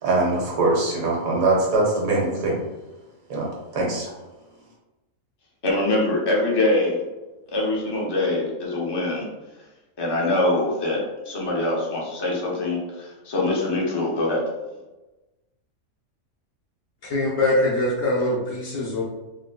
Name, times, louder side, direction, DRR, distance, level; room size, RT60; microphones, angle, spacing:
voice 1, 0.0-2.6 3.3-4.1, right 2 dB, 75° right, -3 dB, 1.4 m, -22 dB
voice 2, 5.6-7.0 7.5-9.3 10.0-14.4, left 2 dB, 35° left, -3 dB, 0.4 m, -24 dB
voice 3, 17.0-19.0, left 1 dB, 70° left, -5 dB, 1.0 m, -23 dB
3.8 x 2.6 x 2.2 m, 1.1 s
omnidirectional pair, 1.5 m